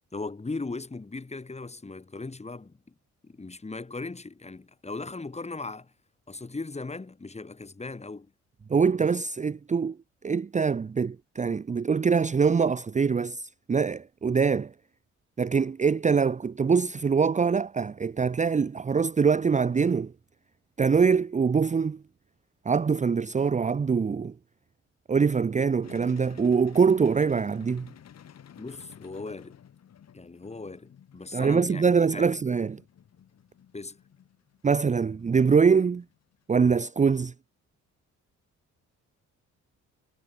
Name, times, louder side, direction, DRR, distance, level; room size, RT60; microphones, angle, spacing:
voice 1, 0.1-2.8 3.2-5.9 6.3-8.3 28.6-29.6 30.1-32.3 33.7-34.0, left 3 dB, 20° left, 5.1 m, -38 dB
voice 2, 8.7-10.0 10.2-14.7 15.4-20.1 20.8-22.0 22.7-24.3 25.1-27.9 31.3-32.8 34.6-36.0 36.5-37.3, right 5 dB, 25° right, 0.7 m, -24 dB
sound 1, 25.8-36.6, left 9 dB, 60° left, 4.7 m, -53 dB
cardioid pair, 90°, 30 cm